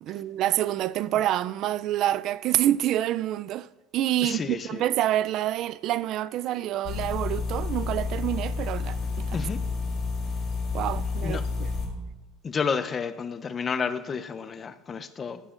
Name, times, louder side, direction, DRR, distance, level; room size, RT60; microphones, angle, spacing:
voice 1, 0.0-3.7 3.9-9.5 10.7-11.7, right 13 dB, 55° right, 0.3 m, -27 dB
voice 2, 4.2-4.8 9.3-9.6 11.2-11.4 12.4-15.4, left 5 dB, 30° left, 0.6 m, -30 dB
sound 1, 6.8-11.8, left 4 dB, 50° left, 3.2 m, -30 dB
16.0 x 12.0 x 2.5 m
cardioid pair, 130°, 0 cm